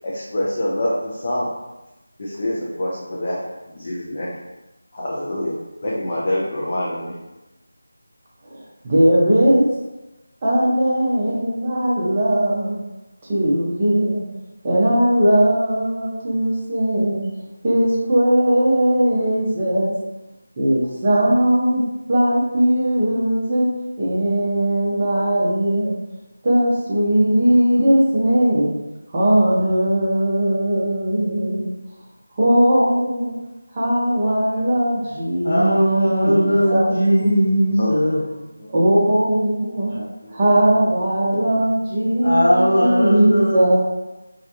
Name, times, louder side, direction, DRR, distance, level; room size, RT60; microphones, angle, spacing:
voice 1, 0.0-1.5 2.2-3.4 3.7-4.4 4.9-5.6 5.8-7.2 37.8-38.2 38.6-38.7 39.9-40.5 41.3-41.5, left 1 dB, 35° left, -6 dB, 0.4 m, -26 dB
voice 2, 8.4-9.7 10.4-12.8 13.3-14.2 14.6-17.3 17.6-19.9 20.6-21.8 22.1-23.7 24.0-25.9 26.4-28.7 29.1-31.7 32.3-33.3 33.7-37.0 38.7-39.9 40.3-43.7, right 1 dB, 25° right, -6 dB, 0.5 m, -19 dB
voice 3, 35.4-38.2 41.4-41.5 42.2-43.7, equal, 65° left, -7 dB, 1.1 m, -18 dB
2.3 x 2.1 x 2.8 m, 1.0 s
figure-of-eight pair, 165°, 0 cm